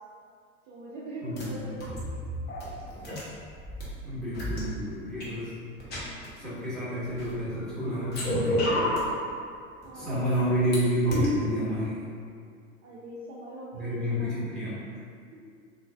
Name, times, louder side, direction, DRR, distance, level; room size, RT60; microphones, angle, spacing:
voice 1, 0.7-2.3 9.8-10.5 12.8-14.3, right 1 dB, 25° right, -6 dB, 0.4 m, -42 dB
voice 2, 1.2-1.9 4.0-5.5 6.3-8.8 9.9-12.0 13.7-14.8, equal, ahead, -11 dB, 1.2 m, -30 dB
sound 1, 1.4-1.5 1.8-3.8 4.3-4.6 5.2-5.3 5.8-6.3 7.0-7.6 8.0-9.1 9.8-10.7 11.1-11.3, left 1 dB, 25° left, 0.9 m, -31 dB
3.7 x 2.5 x 2.3 m, 2.3 s
figure-of-eight pair, 80°, 39 cm